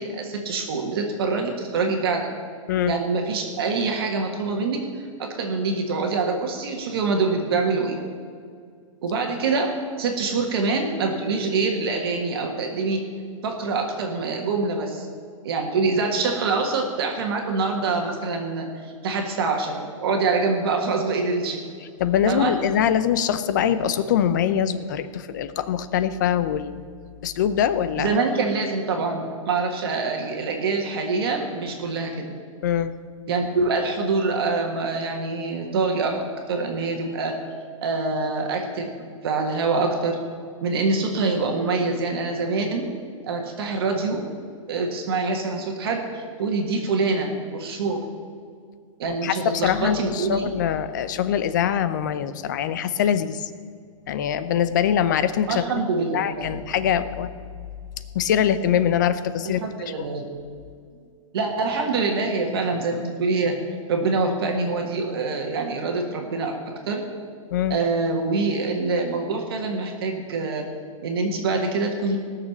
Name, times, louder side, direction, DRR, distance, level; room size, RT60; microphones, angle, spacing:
voice 1, 0.0-2.3 2.9-8.0 9.0-13.0 13.4-15.1 15.4-21.6 22.3-22.5 28.0-32.3 33.3-37.4 37.8-38.9 39.2-40.2 40.6-42.9 43.2-44.2 44.7-48.0 49.0-50.5 55.5-56.6 59.4-60.2 61.3-63.6 63.9-67.0 67.7-70.7 71.0-72.2, right 3 dB, 45° right, 2 dB, 1.7 m, -25 dB
voice 2, 22.0-26.8 27.2-28.2 32.6-32.9 49.2-49.4 49.6-53.5 54.1-55.8 56.1-57.3 58.1-59.6 67.5-67.8, left 9 dB, 35° left, 13 dB, 0.6 m, -23 dB
18.0 x 6.7 x 7.1 m, 2.2 s
hypercardioid pair, 175°, 17 cm